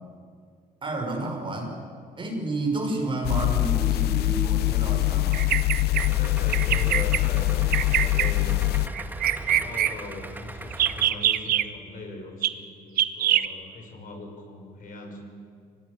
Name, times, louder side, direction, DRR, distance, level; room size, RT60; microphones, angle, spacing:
voice 1, 0.8-1.8 2.2-5.5, right 2 dB, 30° right, 2 dB, 5.7 m, -30 dB
sound 1, 3.2-8.9, left 18 dB, 70° left, 0.7 m, -23 dB
Bird vocalization bird call bird song, 5.3-6.1 6.5-7.2 7.7-8.3 8.9-9.9 10.7-11.6 12.4-12.5 13.0-13.5, right 11 dB, 60° right, 1.1 m, -23 dB
voice 2, 5.9-8.9 9.5-15.2, left 3 dB, 55° left, 3 dB, 5.6 m, -40 dB
Idling, 6.0-11.1, right 1 dB, 10° right, 1.9 m, -39 dB
24.0 x 18.5 x 9.8 m, 2.2 s
cardioid pair, 110°, 17 cm